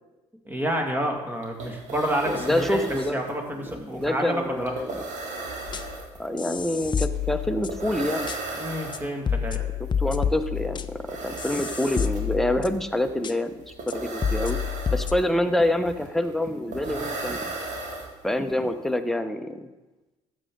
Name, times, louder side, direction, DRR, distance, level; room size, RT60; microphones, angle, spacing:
voice 1, 0.5-2.8 3.1-4.7 8.6-9.6 16.9-17.0, equal, 15° right, 2 dB, 2.2 m, -29 dB
sound 1, 1.1-1.2 1.4-18.5, right 3 dB, 55° right, 2.2 m, -37 dB
voice 2, 2.3-3.2 3.7-5.0 6.2-8.3 10.0-13.5 13.9-14.6 14.9-17.6 18.2-19.7, left 1 dB, ahead, 7 dB, 0.9 m, -26 dB
sound 2, 5.7-6.0 6.4-7.9 8.3-8.4 8.9-9.0 9.3-12.9 13.2-13.3 13.9-14.0 14.2-15.1, left 7 dB, 30° left, 0.6 m, -29 dB
13.0 x 7.7 x 3.8 m, 1.1 s
supercardioid pair, 65°, 14 cm